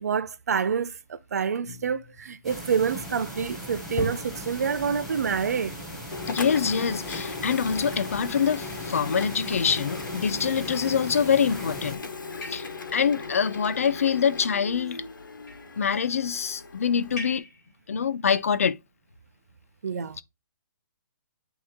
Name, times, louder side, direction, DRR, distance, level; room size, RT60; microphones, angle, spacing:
voice 1, 0.0-5.8 19.8-20.2, right 6 dB, 55° right, 0.5 m, -27 dB
sound 1, 1.6-3.1 4.0-4.9 6.5-7.0 7.5-7.6 8.1-8.3 8.9-9.3 10.4-10.9 11.5-11.8 12.4-13.1 14.2-14.8 15.3-15.8 17.2-17.7, left 3 dB, 20° left, 4.0 m, -41 dB
sound 2, 2.4-12.0, equal, ahead, 0.7 m, -39 dB
Printer, 6.1-17.4, left 4 dB, 80° left, 1.2 m, -38 dB
voice 2, 6.3-12.0 12.5-15.0 15.8-17.4 17.9-18.8, left 7 dB, 45° left, 0.4 m, -25 dB
8.6 x 3.0 x 3.7 m
hypercardioid pair, 180°, 11 cm